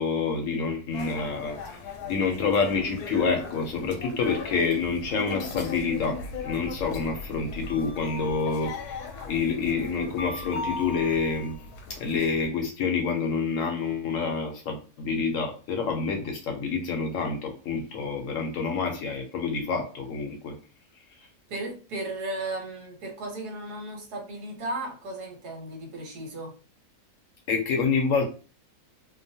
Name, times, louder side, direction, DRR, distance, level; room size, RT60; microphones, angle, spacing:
voice 1, 0.0-1.8 2.1-8.7 9.3-11.5 12.0-20.6 27.5-28.3, left 5 dB, 70° left, 4 dB, 0.8 m, -27 dB
sound 1, 0.9-12.5, left 4 dB, 85° left, 1.1 m, -38 dB
voice 2, 21.5-26.5, right 2 dB, 85° right, 1 dB, 1.4 m, -35 dB
2.9 x 2.1 x 2.6 m, 0.35 s
omnidirectional pair, 1.6 m